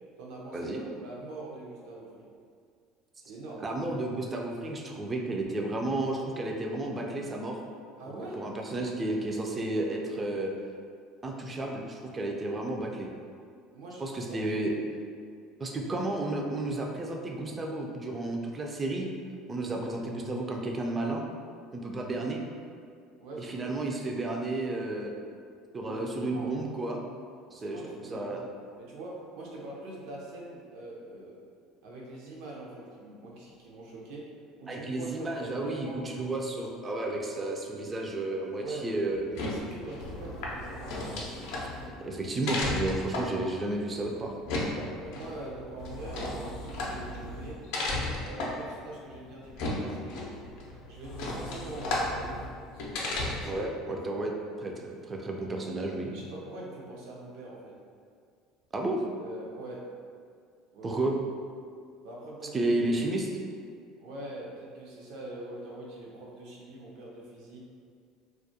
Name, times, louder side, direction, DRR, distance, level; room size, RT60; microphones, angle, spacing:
voice 1, 0.2-2.3 3.2-3.7 8.0-8.4 13.7-14.4 15.6-15.9 23.2-23.7 25.7-26.6 27.5-28.4 28.8-31.4 31.8-34.3 34.6-36.0 38.6-38.9 39.4-41.3 44.6-47.6 48.2-50.3 50.9-52.4 52.7-53.6 53.9-54.3 55.8-57.8 59.2-59.9 60.7-61.0 62.0-62.7 64.0-67.6, right 2 dB, 75° right, -3 dB, 0.5 m, -43 dB
voice 2, 3.6-7.6 8.3-10.5 11.2-13.1 14.0-14.7 15.6-19.1 19.5-21.2 21.7-22.4 23.4-25.1 25.7-27.0 27.5-27.8 28.1-28.4 34.7-39.3 42.0-44.3 53.4-54.3 54.6-56.1 58.7-59.0 60.8-61.2 62.5-63.3, right 2 dB, 25° right, 1 dB, 0.3 m, -32 dB
sound 1, 39.2-53.6, left 2 dB, 75° left, 0.5 m, -35 dB
2.3 x 2.1 x 2.7 m, 2.2 s
supercardioid pair, 110°, 0 cm